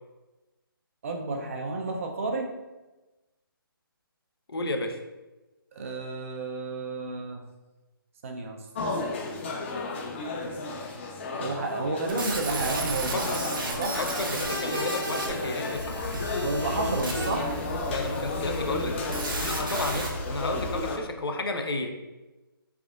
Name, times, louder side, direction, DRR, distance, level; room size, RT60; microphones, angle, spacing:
voice 1, 1.0-2.5 5.8-7.4 8.2-8.6 11.4-14.0 16.4-17.5, right 3 dB, 35° right, 2 dB, 0.5 m, -31 dB
voice 2, 4.5-5.0 13.1-13.2 14.0-16.1 17.9-18.9 19.4-22.0, left 2 dB, 80° left, 4 dB, 0.6 m, -32 dB
sound 1, 8.7-21.0, left 3 dB, 30° left, 0.4 m, -34 dB
sound 2, 12.1-20.1, right 2 dB, 60° right, 0.9 m, -34 dB
sound 3, 15.7-20.9, left 1 dB, 50° left, 0.9 m, -37 dB
3.5 x 3.4 x 2.4 m, 1.1 s
figure-of-eight pair, 155°, 12 cm